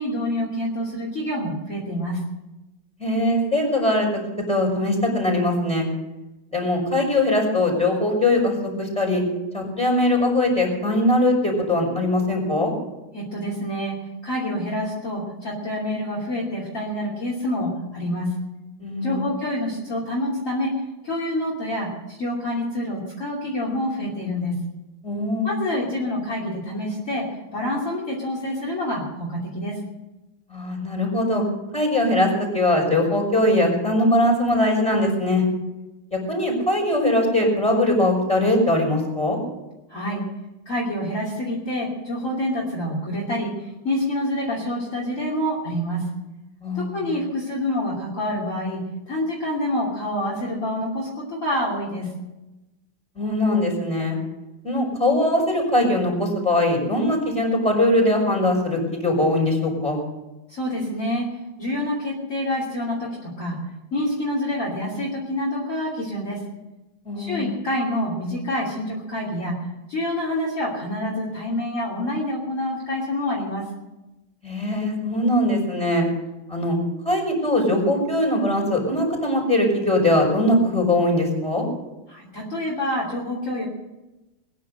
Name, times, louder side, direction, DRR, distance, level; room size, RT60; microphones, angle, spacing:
voice 1, 0.0-2.2 13.1-14.0 14.2-18.3 19.0-20.7 21.0-24.6 25.4-29.8 39.9-40.2 40.7-46.1 46.7-48.8 49.1-52.1 60.5-61.3 61.6-63.6 63.9-66.4 67.2-73.6 82.1-83.6, left 1 dB, 35° left, -4 dB, 3.2 m, -27 dB
voice 2, 3.0-4.2 4.5-5.9 6.5-9.2 9.5-12.7 18.8-19.3 25.0-25.5 30.5-31.4 31.7-35.4 36.1-39.4 46.6-47.1 53.2-54.2 54.6-60.0 67.0-67.4 74.4-76.1 76.5-76.8 77.0-81.7, left 1 dB, 5° left, -1 dB, 5.7 m, -21 dB
21.0 x 10.5 x 6.5 m, 1.0 s
omnidirectional pair, 2.3 m